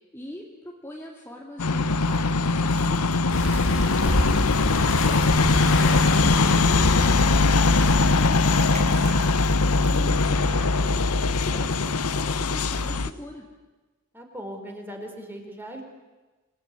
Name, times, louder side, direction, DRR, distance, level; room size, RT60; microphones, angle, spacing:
voice 1, 0.1-3.4 3.7-7.4 7.8-9.3 9.6-11.0 11.2-13.4, left 1 dB, 10° left, -1 dB, 2.5 m, -41 dB
sound 1, 1.6-13.1, left 3 dB, 90° left, 1.0 m, -21 dB
sound 2, 1.9-10.6, right 4 dB, 30° right, 4.9 m, -48 dB
sound 3, 3.3-8.3, left 2 dB, 60° left, 2.4 m, -26 dB
voice 2, 14.1-15.8, equal, 10° right, 3 dB, 4.5 m, -40 dB
27.5 x 20.0 x 9.8 m, 1.2 s
head